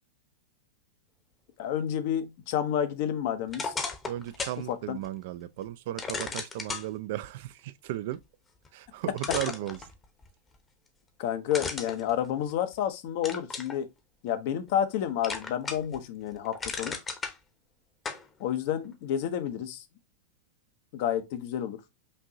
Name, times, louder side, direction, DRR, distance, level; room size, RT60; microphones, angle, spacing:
voice 1, 1.6-3.7 4.7-5.0 11.2-13.9 14.2-17.0 18.4-19.8 20.9-21.8, left 10 dB, 55° left, 0.7 m, -30 dB
sound 1, 3.5-4.6 5.0-5.1 6.0-6.9 8.6-8.7 9.2-10.3 11.5-12.8 13.2-13.8 14.3-14.9 15.2-16.0 16.3-17.3 18.0-18.2, left 4 dB, 20° left, 0.9 m, -35 dB
voice 2, 4.1-8.2 8.7-9.9, right 14 dB, 55° right, 0.4 m, -35 dB
5.3 x 2.7 x 2.7 m
figure-of-eight pair, 95°, 0 cm